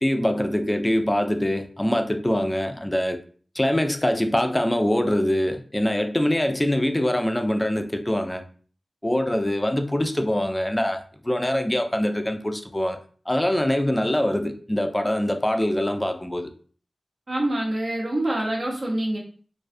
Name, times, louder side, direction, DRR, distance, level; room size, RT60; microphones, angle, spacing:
voice 1, 0.0-3.2 3.6-8.4 9.0-13.0 13.3-16.5, left 1 dB, 15° left, 0.3 m, -24 dB
voice 2, 17.3-19.2, right 1 dB, 55° right, 0.8 m, -25 dB
2.3 x 2.3 x 2.5 m
wide cardioid pair, 70°, 0 cm